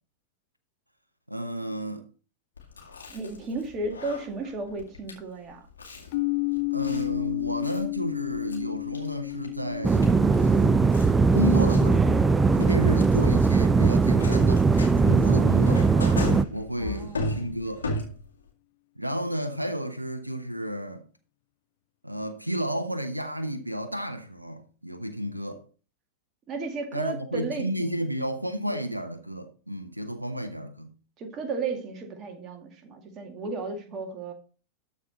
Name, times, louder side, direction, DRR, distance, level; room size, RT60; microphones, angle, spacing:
voice 1, 1.3-2.0 6.7-10.1 10.4-10.8 11.3-14.7 15.0-16.3 16.5-17.9 19.0-21.0 22.0-25.6 26.9-30.9, right 1 dB, 85° right, 0.9 m, -32 dB
Chewing mastication, 2.6-18.5, left 2 dB, 75° left, 2.3 m, -38 dB
voice 2, 3.1-5.6 16.8-17.4 26.5-28.0 28.7-28.8 31.2-34.3, right 3 dB, 30° right, 2.1 m, -34 dB
sound 1, 6.1-13.9, left 27 dB, 50° left, 0.4 m, -33 dB
sound 2, 9.8-16.4, right 4 dB, 15° right, 0.4 m, -20 dB
13.0 x 4.6 x 4.1 m
figure-of-eight pair, 90°, 0 cm